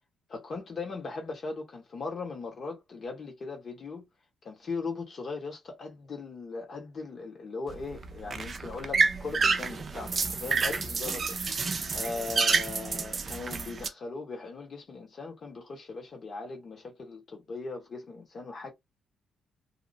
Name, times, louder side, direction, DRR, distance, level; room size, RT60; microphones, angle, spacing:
voice 1, 0.3-4.1 4.4-18.7, left 4 dB, 45° left, 1.3 m, -39 dB
sound 1, 7.7-13.9, right 4 dB, 40° right, 0.5 m, -29 dB
2.8 x 2.1 x 2.7 m
cardioid pair, 90°, 0 cm